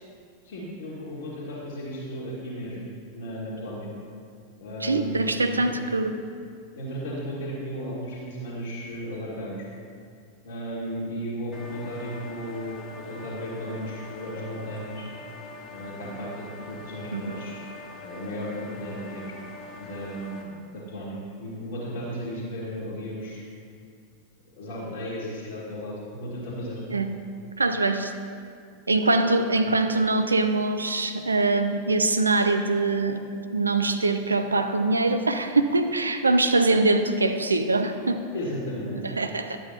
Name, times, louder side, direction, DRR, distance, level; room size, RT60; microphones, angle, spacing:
voice 1, 0.4-3.9 4.6-5.7 6.8-9.7 10.4-15.1 15.7-17.6 18.0-19.3 19.8-23.4 24.6-26.8 29.6-29.7 38.3-39.0, equal, 55° left, -8 dB, 1.9 m, -35 dB
voice 2, 4.8-6.1 17.1-17.2 26.9-27.1 27.6-28.1 28.9-38.2 39.2-39.6, right 2 dB, 80° right, 8 dB, 0.5 m, -23 dB
sound 1, 11.5-20.4, left 3 dB, 30° left, 1.2 m, -43 dB
12.0 x 8.2 x 2.8 m, 2.3 s
figure-of-eight pair, 90°, 0 cm